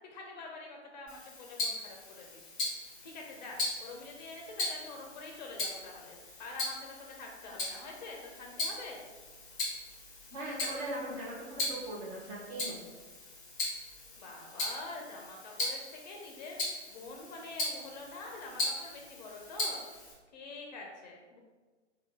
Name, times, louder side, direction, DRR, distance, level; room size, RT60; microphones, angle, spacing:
voice 1, 0.1-2.5 3.0-9.0 14.2-19.8 20.3-21.4, left 3 dB, 40° left, 0 dB, 0.6 m, -46 dB
Tick-tock, 1.1-20.1, left 2 dB, 20° left, 1.2 m, -39 dB
voice 2, 10.3-12.8, right 1 dB, 20° right, -4 dB, 0.7 m, -39 dB
3.5 x 2.3 x 3.8 m, 1.3 s
figure-of-eight pair, 110°, 36 cm